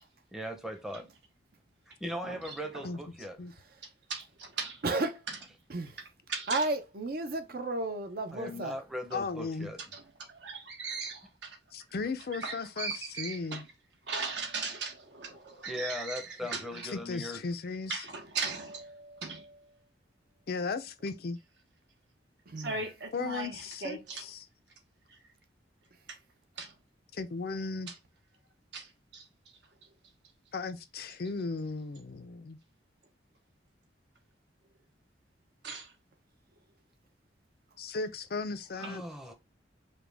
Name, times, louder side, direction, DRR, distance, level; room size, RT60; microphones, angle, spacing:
voice 1, 0.3-1.0 2.0-3.4 8.3-9.8 15.7-17.4 38.7-39.3, equal, 5° right, 0.7 m, -39 dB
voice 2, 2.2-2.9 4.1-4.8 5.3-5.4 6.0-6.7 9.9-11.6 12.3-13.6 14.1-16.9 17.9-19.7 22.6-24.3 25.1-25.2 26.1-26.2 26.6-26.7 27.9-28.0 28.7-29.3 35.6-35.9 38.8-39.0, right 4 dB, 70° right, 1.2 m, -39 dB
voice 3, 4.8-5.2 5.7-6.0 6.5-8.7 22.5-22.8, right 2 dB, 55° right, 0.6 m, -32 dB
voice 4, 9.1-9.7 11.7-12.9 13.2-13.6 16.9-18.0 20.5-21.4 23.1-24.4 27.1-27.9 30.5-32.6 37.8-39.0, left 4 dB, 55° left, 0.5 m, -36 dB
5.1 x 2.2 x 3.4 m
head